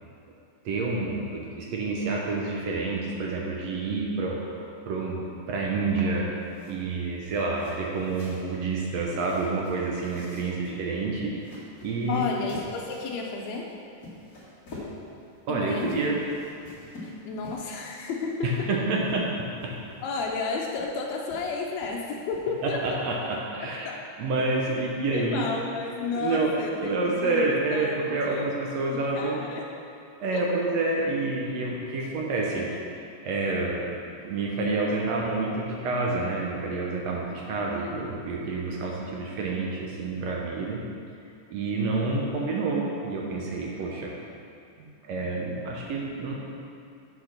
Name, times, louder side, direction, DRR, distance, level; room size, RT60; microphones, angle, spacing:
voice 1, 0.6-6.3 6.7-11.3 11.8-12.2 15.5-16.2 18.4-19.3 19.6-19.7 22.6-25.5 26.1-26.5 26.8-29.4 30.2-32.7 33.0-33.9 34.2-40.8 41.5-44.1 44.8-46.3, right 3 dB, 70° right, -2 dB, 1.6 m, -28 dB
sound 1, 6.3-23.4, left 2 dB, 30° left, 1.9 m, -47 dB
voice 2, 12.1-13.7 15.5-16.1 17.0-18.7 20.0-23.0 23.6-24.0 25.1-28.5 28.9-29.6 30.3-30.4 32.5-32.8, left 4 dB, 85° left, -1 dB, 1.6 m, -32 dB
7.9 x 5.0 x 5.8 m, 2.5 s
omnidirectional pair, 4.0 m